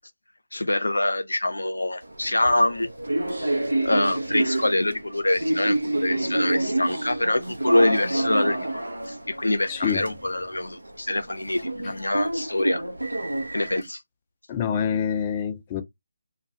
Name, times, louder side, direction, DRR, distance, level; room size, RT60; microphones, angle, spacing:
voice 1, 0.5-2.9 3.8-12.8 13.5-14.0, left 1 dB, 80° left, 0.5 m, -25 dB
sound 1, 2.0-13.8, right 1 dB, 85° right, 0.6 m, -28 dB
voice 2, 9.7-10.1 14.5-15.8, left 7 dB, 25° left, 0.4 m, -26 dB
2.3 x 2.2 x 2.7 m
figure-of-eight pair, 150°, 0 cm